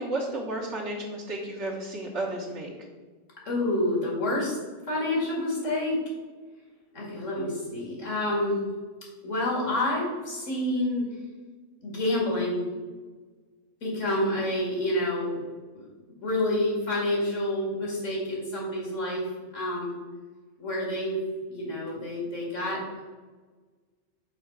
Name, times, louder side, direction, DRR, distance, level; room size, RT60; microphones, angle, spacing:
voice 1, 0.0-2.7, right 1 dB, 60° right, -2 dB, 1.4 m, -32 dB
voice 2, 3.5-4.6 4.9-6.0 6.9-8.6 9.2-11.0 11.8-12.6 13.8-15.4 15.7-15.8 16.2-19.2 19.5-20.0 20.6-21.2 21.5-23.0, left 1 dB, 70° left, -4 dB, 2.5 m, -28 dB
5.7 x 4.3 x 5.8 m, 1.4 s
omnidirectional pair, 1.4 m